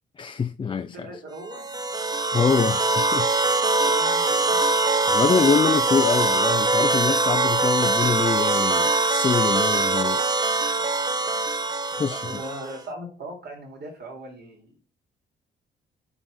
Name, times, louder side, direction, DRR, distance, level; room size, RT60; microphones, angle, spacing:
voice 1, 0.2-1.1 2.3-3.3 4.3-4.4 5.1-10.2 12.0-12.2, left 6 dB, 25° left, 0.4 m, -24 dB
voice 2, 0.9-1.7 3.8-4.6 12.1-14.8, right 1 dB, 55° right, 3.2 m, -38 dB
sound 1, 1.5-12.8, right 2 dB, 20° right, 0.8 m, -22 dB
6.1 x 5.4 x 6.3 m
cardioid pair, 90°, 20 cm